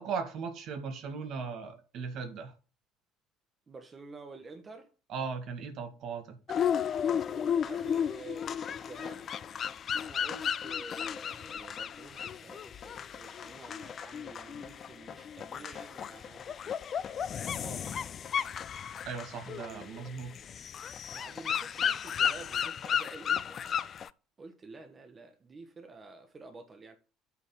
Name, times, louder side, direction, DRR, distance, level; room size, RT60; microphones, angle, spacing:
voice 1, 0.0-2.5 5.1-6.3 19.0-20.4, right 5 dB, 50° right, 1.6 m, -38 dB
voice 2, 3.7-4.9 7.3-9.3 10.0-16.8 17.4-17.9 19.5-19.9 21.1-23.7 24.4-27.0, right 3 dB, 30° right, 1.1 m, -49 dB
sound 1, 6.5-24.1, left 8 dB, 40° left, 0.4 m, -34 dB
8.4 x 4.1 x 5.9 m
figure-of-eight pair, 55°, 0 cm